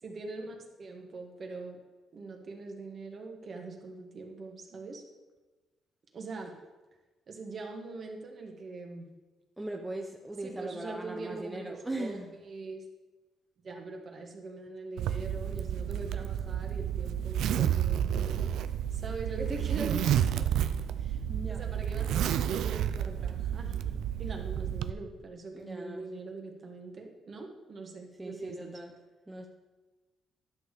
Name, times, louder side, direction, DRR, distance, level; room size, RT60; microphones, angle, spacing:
voice 1, 0.0-1.8 2.1-5.0 6.1-6.5 7.3-9.1 10.4-12.2 12.4-12.8 13.6-18.5 18.9-20.5 21.0-21.2 21.5-28.8, right 3 dB, 50° right, 2 dB, 1.8 m, -42 dB
voice 2, 9.6-12.3 21.3-21.7 25.5-26.1 28.2-28.9 29.3-29.5, right 1 dB, 10° right, 2 dB, 0.9 m, -39 dB
Zipper (clothing), 15.0-24.9, right 10 dB, 80° right, 0.4 m, -30 dB
10.5 x 6.4 x 5.0 m, 1.2 s
cardioid pair, 90°, 0 cm